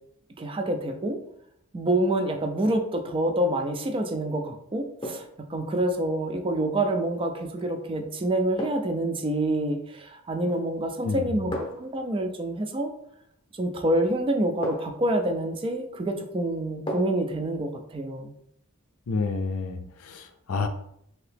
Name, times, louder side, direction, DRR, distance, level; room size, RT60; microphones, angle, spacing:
voice 1, 0.4-1.2 1.7-5.2 5.5-12.9 13.6-18.3, right 1 dB, 25° right, 5 dB, 0.4 m, -27 dB
sound 1, 3.4-3.8 5.0-5.4 7.5-7.7 8.6-9.0 10.4-10.8 11.5-12.0 13.6-13.7 14.6-15.1 16.9-17.3 17.7-17.8, equal, 25° left, 0.7 m, -36 dB
voice 2, 11.0-11.4 19.1-20.7, left 4 dB, 85° left, 6 dB, 0.5 m, -30 dB
2.8 x 2.8 x 3.3 m, 0.71 s
head